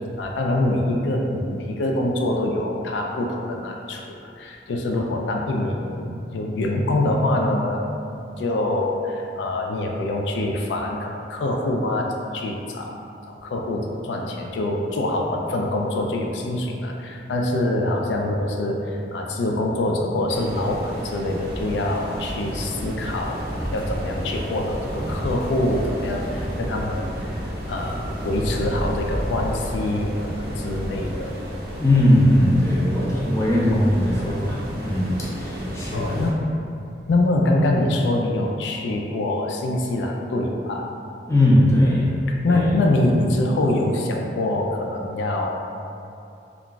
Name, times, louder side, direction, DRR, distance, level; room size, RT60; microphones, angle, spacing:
voice 1, 0.2-7.9 8.4-12.9 13.3-23.4 23.7-27.4 27.7-31.3 35.9-36.4 37.1-40.8 42.3-45.5, left 1 dB, 90° left, 1 dB, 0.3 m, -24 dB
sound 1, 20.3-36.3, equal, 55° right, 0.5 m, -33 dB
sound 2, 21.5-29.5, equal, 65° left, 0.9 m, -34 dB
voice 2, 31.8-36.2 41.3-42.1 42.5-42.7, left 1 dB, 15° left, -7 dB, 0.5 m, -19 dB
2.4 x 2.2 x 3.7 m, 2.7 s
head